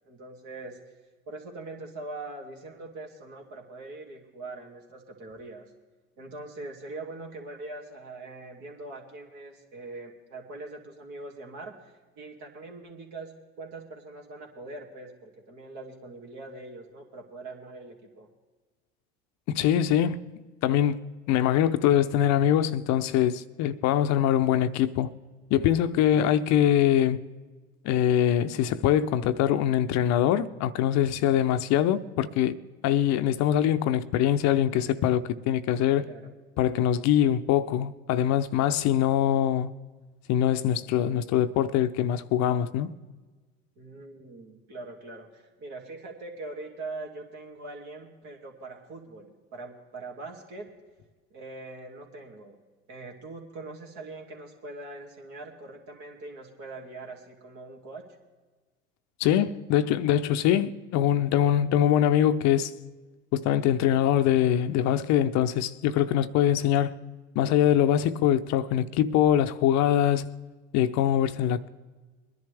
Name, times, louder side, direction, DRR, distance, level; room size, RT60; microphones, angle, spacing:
voice 1, 0.0-0.8 1.3-5.7 6.2-13.3 13.6-18.3 36.0-36.3 43.8-50.7 51.3-52.6 52.9-58.0, right 2 dB, 60° right, 2.4 m, -42 dB
voice 2, 19.5-20.2 20.6-25.1 25.5-27.2 27.8-32.6 32.8-36.0 36.6-39.7 40.3-42.9 59.2-62.7 63.3-66.9 67.4-70.3 70.7-71.7, left 10 dB, 55° left, 0.7 m, -23 dB
21.5 x 10.5 x 3.4 m
hypercardioid pair, 75°, 33 cm